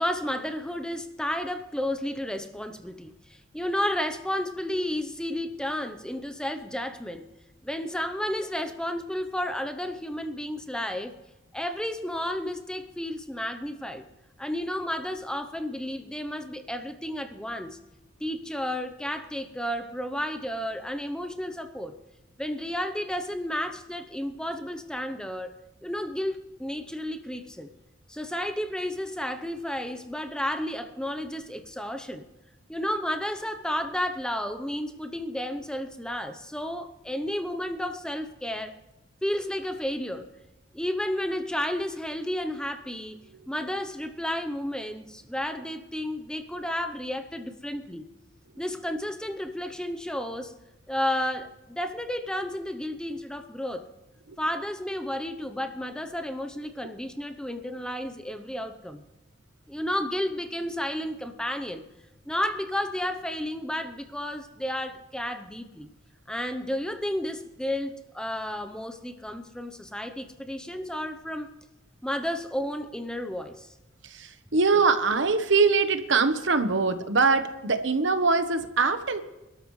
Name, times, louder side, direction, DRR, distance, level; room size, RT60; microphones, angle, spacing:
voice 1, 0.0-7.3 7.6-11.1 11.5-14.0 14.4-17.8 18.2-21.9 22.4-25.5 25.8-27.7 28.1-32.2 32.7-38.8 39.2-40.3 40.7-43.2 43.5-48.1 48.6-50.5 50.9-53.8 54.4-59.0 59.7-61.8 62.3-65.9 66.3-71.5 72.0-73.7, left 1 dB, 5° left, 7 dB, 0.7 m, -32 dB
voice 2, 74.0-79.2, right 4 dB, 70° right, 9 dB, 1.1 m, -23 dB
27.0 x 12.5 x 3.2 m, 1.0 s
head